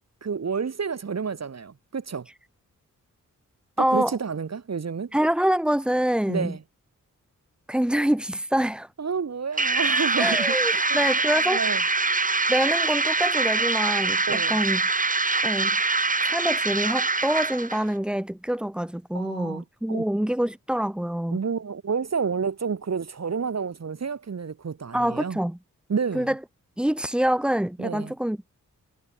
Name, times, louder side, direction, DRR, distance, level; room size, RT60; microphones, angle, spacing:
voice 1, 0.2-2.3 3.9-5.1 6.3-6.6 9.0-11.0 11.5-11.8 14.3-14.6 19.1-20.1 21.3-25.4 25.9-26.3 27.8-28.1, right 6 dB, 55° right, 1.4 m, -30 dB
voice 2, 3.8-4.2 5.1-6.6 7.7-8.9 10.2-11.6 12.5-14.8 15.4-15.8 16.2-21.4 24.9-25.6 26.1-26.4 26.8-28.4, right 1 dB, 5° right, 0.5 m, -25 dB
sound 1, 9.6-17.8, right 3 dB, 25° right, 1.2 m, -24 dB
wide cardioid pair, 85°, 32 cm